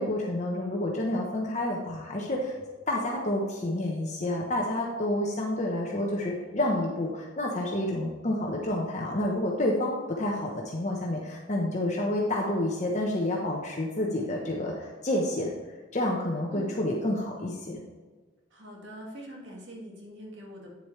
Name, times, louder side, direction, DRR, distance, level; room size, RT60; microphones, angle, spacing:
voice 1, 0.0-2.5 2.9-15.5 15.9-17.8, left 1 dB, 35° left, -1 dB, 1.0 m, -29 dB
voice 2, 18.5-20.7, equal, 65° right, -2 dB, 2.0 m, -43 dB
9.3 x 7.7 x 3.2 m, 1.3 s
head